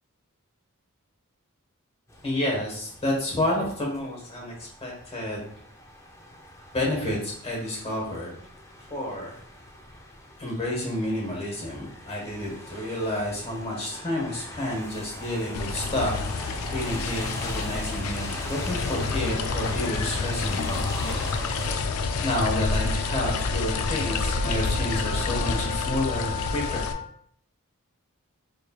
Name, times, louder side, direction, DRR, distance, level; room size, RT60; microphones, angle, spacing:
sound 1, 2.1-21.7, left 1 dB, 15° left, 0.4 m, -41 dB
voice 1, 2.2-5.4 6.7-8.4 8.9-9.4 10.4-21.2 22.2-26.9, left 1 dB, 30° left, -2 dB, 1.3 m, -30 dB
sound 2, 15.5-26.9, left 4 dB, 70° left, 0.4 m, -29 dB
sound 3, 21.4-27.0, left 5 dB, 45° right, 1.1 m, -37 dB
4.3 x 3.2 x 2.3 m, 0.64 s
head